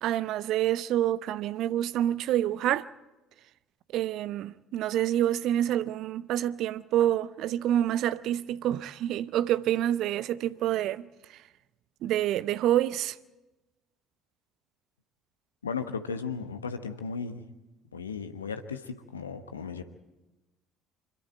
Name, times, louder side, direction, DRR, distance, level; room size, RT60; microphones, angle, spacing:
voice 1, 0.0-2.9 3.9-11.4 12.0-13.2, right 12 dB, 55° right, 0.6 m, -27 dB
voice 2, 15.6-17.4 17.9-19.8, left 5 dB, 80° left, 1.1 m, -35 dB
25.5 x 22.5 x 4.5 m
figure-of-eight pair, 55°, 0 cm